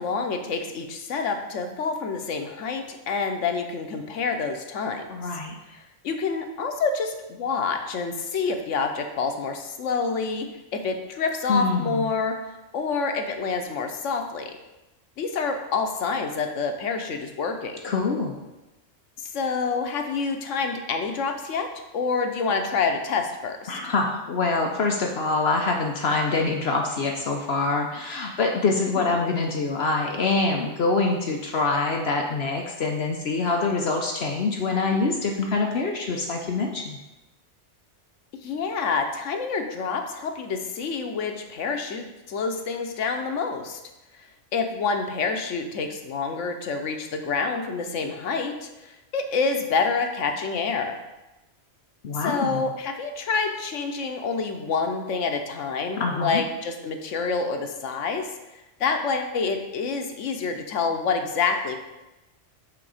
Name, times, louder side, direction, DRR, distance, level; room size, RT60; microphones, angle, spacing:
voice 1, 0.0-5.1 6.0-12.3 12.7-14.5 15.2-17.8 19.2-21.7 21.9-23.8 29.0-29.1 38.4-43.8 44.1-51.0 52.2-58.3 58.8-61.8, left 4 dB, 90° left, 5 dB, 1.1 m, -27 dB
voice 2, 5.1-5.5 11.5-12.1 17.8-18.3 23.7-37.0 52.0-52.7 56.0-56.4, left 3 dB, 60° left, 1 dB, 0.9 m, -25 dB
8.1 x 3.8 x 4.9 m, 1.0 s
omnidirectional pair, 1.2 m